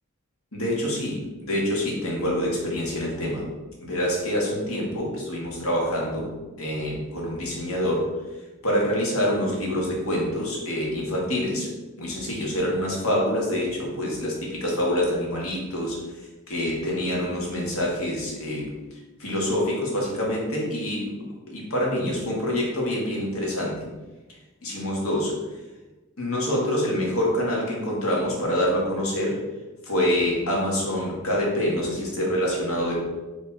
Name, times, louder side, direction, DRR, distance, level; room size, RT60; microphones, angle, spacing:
voice 1, 0.5-3.5 3.8-6.3 6.6-11.7 12.0-23.9 24.3-25.6 26.2-29.4 29.8-33.0, equal, 85° left, -3 dB, 1.8 m, -26 dB
5.2 x 3.4 x 5.4 m, 1.2 s
head